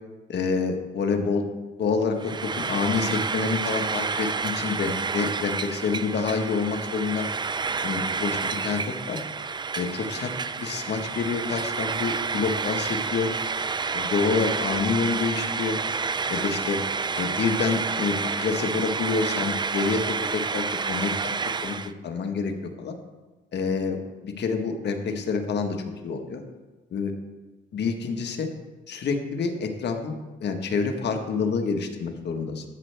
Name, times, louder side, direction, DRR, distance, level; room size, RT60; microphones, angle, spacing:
voice 1, 0.3-1.4 1.8-7.3 7.8-9.2 9.7-10.3 10.6-13.3 13.9-15.8 16.3-16.8 17.2-21.1 21.6-21.7 22.0-22.5 22.8-22.9 23.5-24.0 24.2-25.8 26.0-26.4 26.9-27.1 27.7-28.5 28.9-30.1 30.4-32.6, left 5 dB, 60° left, 4 dB, 1.4 m, -27 dB
Frying (food), 2.2-21.9, right 5 dB, 20° right, 0.4 m, -29 dB
13.0 x 7.7 x 3.4 m, 1.2 s
cardioid pair, 90°, 20 cm